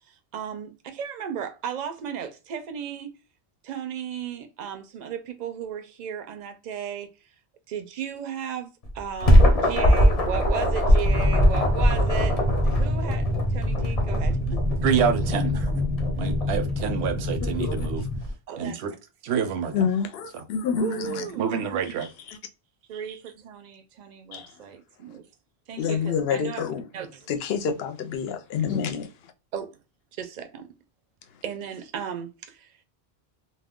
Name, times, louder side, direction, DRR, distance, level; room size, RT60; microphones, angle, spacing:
voice 1, 0.0-3.1 3.6-7.1 7.7-12.4 12.6-14.6 18.5-18.8 20.8-21.4 22.9-25.3 25.7-26.6 26.9-27.3 29.5-29.7 30.2-30.7 31.4-32.7, right 8 dB, 55° right, 0.5 m, -35 dB
sound 1, 8.8-18.3, equal, 40° left, 0.7 m, -22 dB
sound 2, 11.0-18.2, left 1 dB, 5° right, 0.5 m, -27 dB
voice 2, 14.8-15.7 16.2-18.0 18.6-18.9 19.2-19.9 20.3-20.4 21.4-22.1, right 7 dB, 85° right, 0.8 m, -27 dB
voice 3, 17.4-17.9 19.7-21.3 22.3-22.4 24.3-24.5 25.8-26.9 27.3-29.1, left 6 dB, 75° left, 0.8 m, -28 dB
2.3 x 2.1 x 3.5 m
omnidirectional pair, 1.1 m